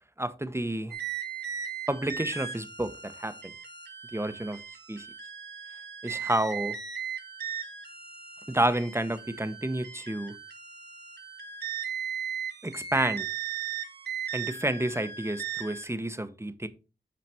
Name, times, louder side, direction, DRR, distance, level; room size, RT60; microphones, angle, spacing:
voice 1, 0.2-0.9 1.9-3.5 4.1-4.6 4.9-5.1 6.0-6.8 8.5-10.3 12.6-13.3 14.3-16.7, right 1 dB, 15° right, 1.0 m, -30 dB
sound 1, 0.9-15.9, right 8 dB, 70° right, 1.4 m, -37 dB
9.6 x 4.1 x 4.4 m
cardioid pair, 40°, 18 cm